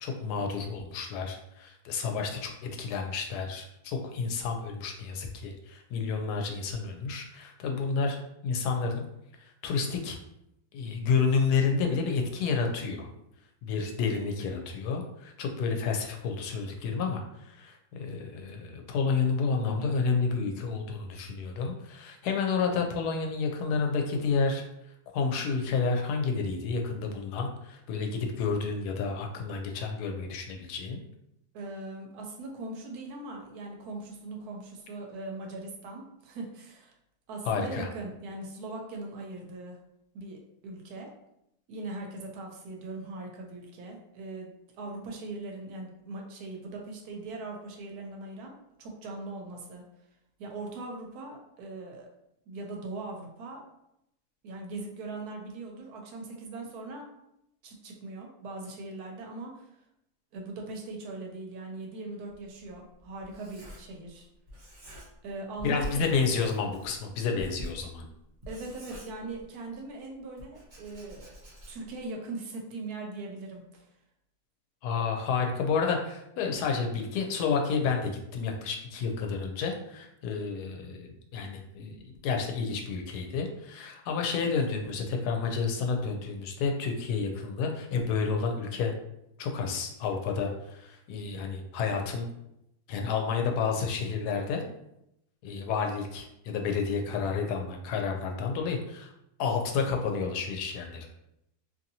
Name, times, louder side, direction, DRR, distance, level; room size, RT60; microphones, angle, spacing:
voice 1, 0.0-8.2 8.4-9.0 9.4-10.2 10.7-13.1 13.6-24.6 25.1-31.0 37.5-37.9 65.6-68.0 74.8-88.9 89.4-92.3 92.9-94.6 95.4-99.1 99.4-101.1, left 5 dB, 85° left, 3 dB, 1.1 m, -30 dB
voice 2, 31.5-36.9 37.3-39.8 40.1-41.1 41.7-44.5 44.8-49.8 50.4-52.1 52.5-53.6 54.4-57.1 57.6-59.7 60.3-64.3 65.2-66.2 68.5-71.3 71.7-73.9, right 2 dB, 75° right, 1 dB, 1.1 m, -40 dB
Writing, 62.3-64.2 64.5-65.3 65.6-69.7 70.4-72.0, left 1 dB, 40° right, 0.7 m, -45 dB
2.9 x 2.7 x 2.7 m, 0.82 s
omnidirectional pair, 1.7 m